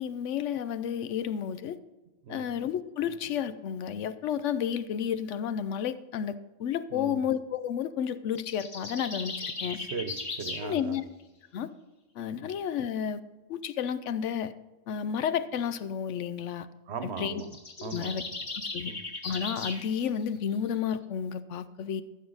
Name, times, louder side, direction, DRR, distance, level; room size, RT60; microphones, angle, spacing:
voice 1, 0.0-1.8 2.3-9.8 10.6-11.0 11.5-11.7 12.2-13.2 13.5-14.5 14.9-16.7 17.2-17.4 17.8-18.2 18.6-18.9 19.2-22.0, left 8 dB, 75° left, 13 dB, 0.9 m, -31 dB
voice 2, 6.9-7.3 9.7-11.0 12.3-12.5 16.9-17.5 17.8-18.3 18.8-19.0, right 5 dB, 60° right, 9 dB, 1.1 m, -38 dB
sound 1, 8.4-10.7 17.3-19.8, left 3 dB, 50° left, 1.7 m, -37 dB
14.5 x 6.6 x 4.0 m, 1.1 s
omnidirectional pair, 1.3 m